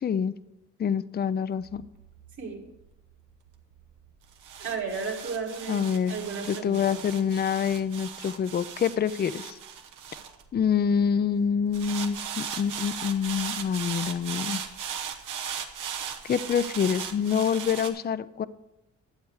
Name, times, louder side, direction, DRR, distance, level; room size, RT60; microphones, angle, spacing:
voice 1, 0.0-0.3 0.8-1.8 5.7-6.1 6.5-9.6 10.5-14.6 16.2-18.5, left 7 dB, 30° left, 16 dB, 0.4 m, -26 dB
sound 1, 1.6-11.0 11.7-17.9, right 8 dB, 90° right, 1.1 m, -38 dB
voice 2, 2.4-2.7 4.6-7.0, right 5 dB, 70° right, -4 dB, 2.2 m, -34 dB
11.5 x 7.7 x 4.8 m, 0.92 s
cardioid pair, 80°, 31 cm